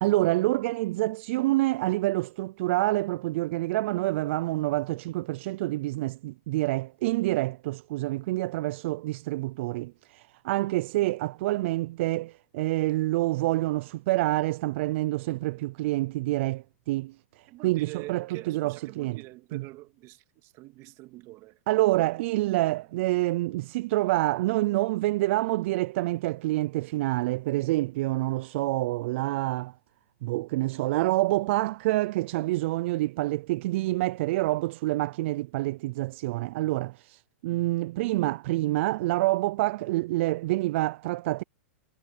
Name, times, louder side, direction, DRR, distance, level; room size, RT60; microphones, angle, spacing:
voice 1, 0.0-17.1 17.6-19.2 19.5-19.6 21.7-29.7 30.2-41.4, right 18 dB, 55° right, 0.4 m, -27 dB
voice 2, 17.5-21.6 22.0-22.3 22.7-22.9, right 19 dB, 40° right, 2.1 m, -45 dB
hypercardioid pair, 135°, 8 cm